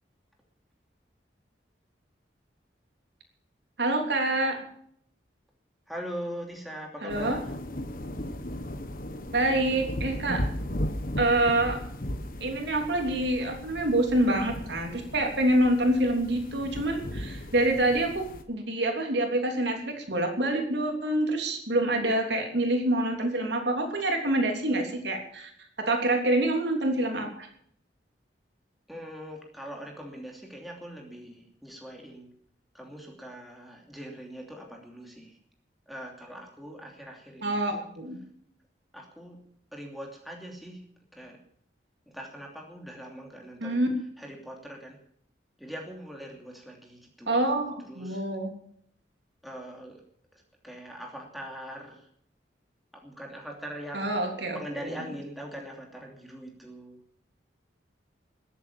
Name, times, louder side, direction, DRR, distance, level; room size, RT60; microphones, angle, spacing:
voice 1, 3.8-4.6 7.0-7.4 9.3-10.4 11.2-11.8 12.4-25.5 25.8-27.5 37.4-38.2 43.6-43.9 47.3-48.5 53.9-54.6, right 1 dB, 70° right, 3 dB, 3.4 m, -26 dB
voice 2, 5.9-7.5 28.9-32.3 32.7-35.4 35.9-37.9 38.9-39.4 39.7-40.8 41.1-41.4 42.1-43.8 44.2-45.0 45.6-47.6 47.9-48.2 49.4-50.0 50.6-52.1 52.9-54.2 54.5-57.0, equal, ahead, 0 dB, 2.8 m, -42 dB
sound 1, 7.1-18.4, left 1 dB, 50° left, 1.4 m, -36 dB
21.5 x 8.4 x 7.3 m, 0.66 s
head